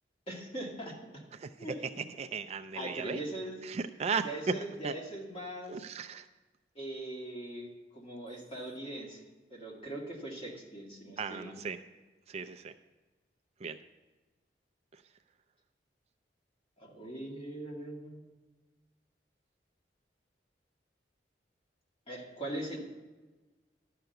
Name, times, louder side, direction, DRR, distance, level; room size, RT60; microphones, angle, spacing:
voice 1, 0.3-1.2 1.6-1.8 2.7-3.6 4.2-5.8 6.8-7.7 7.9-9.2 9.5-11.6 16.8-18.2 22.1-22.8, right 1 dB, 30° left, -2 dB, 2.2 m, -41 dB
voice 2, 2.2-3.2 3.6-4.3 4.8-4.9 5.7-6.3 11.2-11.8 12.3-12.7 13.6-13.8, right 5 dB, 35° right, 8 dB, 0.4 m, -36 dB
11.5 x 5.8 x 7.9 m, 1.2 s
head